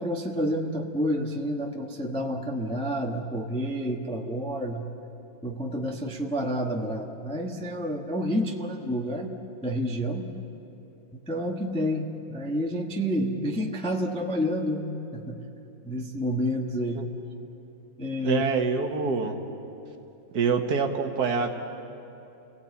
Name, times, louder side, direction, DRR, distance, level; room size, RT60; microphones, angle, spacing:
voice 1, 0.0-4.9 5.4-9.3 9.6-10.3 11.3-15.4 15.8-17.0 18.0-18.4, equal, 5° left, 0 dB, 1.1 m, -29 dB
voice 2, 18.2-19.3 20.3-21.5, right 5 dB, 55° right, 3 dB, 2.0 m, -25 dB
29.5 x 18.0 x 8.5 m, 2.9 s
omnidirectional pair, 2.2 m